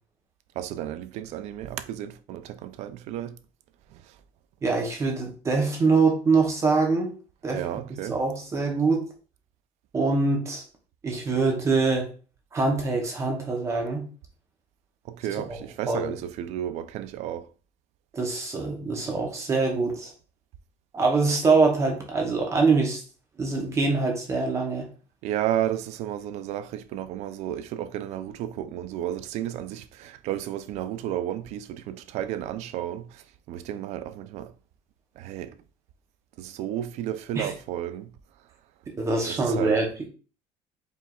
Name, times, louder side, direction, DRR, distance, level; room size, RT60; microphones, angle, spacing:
voice 1, 0.6-3.3 7.5-8.2 15.1-17.4 25.2-34.5 35.2-35.5 36.4-38.1 39.3-39.7, right 11 dB, 55° right, 0.4 m, -32 dB
voice 2, 4.6-7.1 7.4-7.6 8.1-9.1 9.9-10.6 11.0-12.1 12.5-14.0 15.5-15.6 15.9-16.2 18.1-20.1 20.9-23.0 23.4-24.9 37.3-37.5 39.0-40.1, right 3 dB, 20° right, 0.7 m, -24 dB
4.8 x 3.2 x 2.3 m
cardioid pair, 165°, 13 cm